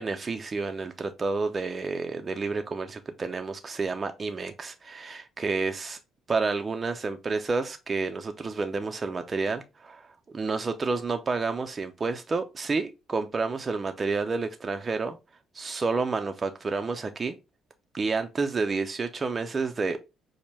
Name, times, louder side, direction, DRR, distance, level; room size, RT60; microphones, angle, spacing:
voice 1, 0.0-6.0 6.3-10.1 10.3-15.2 15.5-17.4 17.9-20.0, right 4 dB, 35° right, 0.5 m, -30 dB
5.0 x 2.1 x 3.2 m
hypercardioid pair, 50°, 0 cm